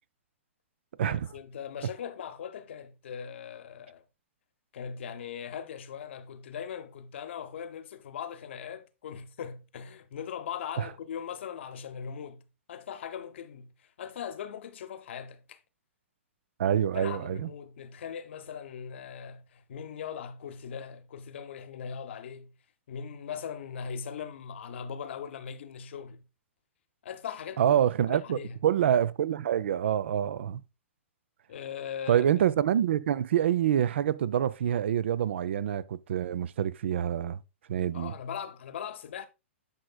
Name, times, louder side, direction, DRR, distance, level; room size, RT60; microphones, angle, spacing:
voice 1, 1.0-4.0 4.7-12.4 12.7-15.6 16.9-22.5 22.9-26.2 27.0-28.6 31.5-32.2 37.9-39.3, left 7 dB, 60° left, 0.8 m, -40 dB
voice 2, 16.6-17.5 27.6-30.6 32.1-37.4 37.7-38.1, right 10 dB, 60° right, 0.4 m, -26 dB
9.7 x 5.1 x 2.2 m
figure-of-eight pair, 115°, 7 cm